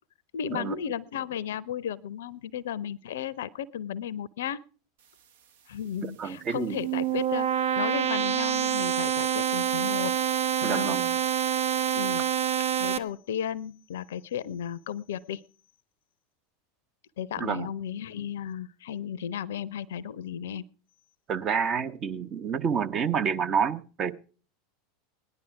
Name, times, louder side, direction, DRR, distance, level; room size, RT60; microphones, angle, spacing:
voice 1, 0.3-4.6 5.7-10.1 10.6-11.0 11.9-12.2 12.8-15.4 17.2-20.6, left 9 dB, 65° left, 23 dB, 0.6 m, -34 dB
voice 2, 6.0-6.8 10.6-11.2 17.4-17.7 21.3-24.2, right 6 dB, 35° right, 11 dB, 0.9 m, -29 dB
sound 1, 6.5-13.0, right 9 dB, 65° right, 0.9 m, -27 dB
18.0 x 11.0 x 4.6 m, 0.38 s
figure-of-eight pair, 85°, 0 cm